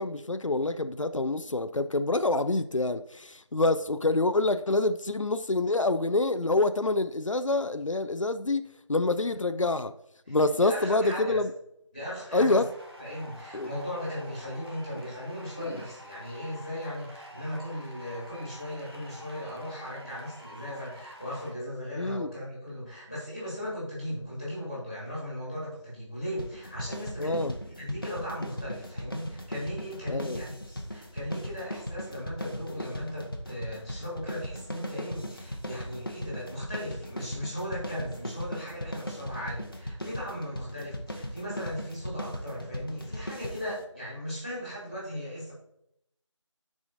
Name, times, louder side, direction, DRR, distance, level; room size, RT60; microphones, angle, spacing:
voice 1, 0.0-8.6 8.9-9.9 10.3-11.5 12.3-12.7 13.5-13.7 15.6-15.8 22.0-22.3 27.2-27.5 30.1-30.4, left 2 dB, 85° left, 0.5 m, -26 dB
voice 2, 10.3-11.4 11.9-12.6 13.0-45.5, equal, 15° left, 2.2 m, -37 dB
sound 1, 12.6-21.5, equal, 50° right, 1.6 m, -48 dB
sound 2, 26.4-43.8, equal, 45° left, 0.9 m, -38 dB
13.5 x 4.8 x 2.6 m
figure-of-eight pair, 175°, 16 cm